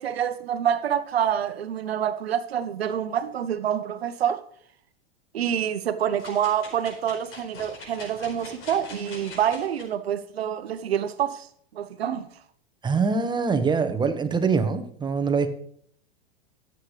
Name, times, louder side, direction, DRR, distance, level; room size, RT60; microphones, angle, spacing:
voice 1, 0.0-4.4 5.3-11.5 11.7-12.3, right 9 dB, 90° right, 0.8 m, -27 dB
sound 1, 6.2-9.8 10.4-10.5, left 3 dB, 70° left, 5.0 m, -43 dB
voice 2, 12.8-15.5, right 5 dB, 15° right, 1.0 m, -24 dB
14.0 x 8.2 x 3.2 m
hypercardioid pair, 110°, 30 cm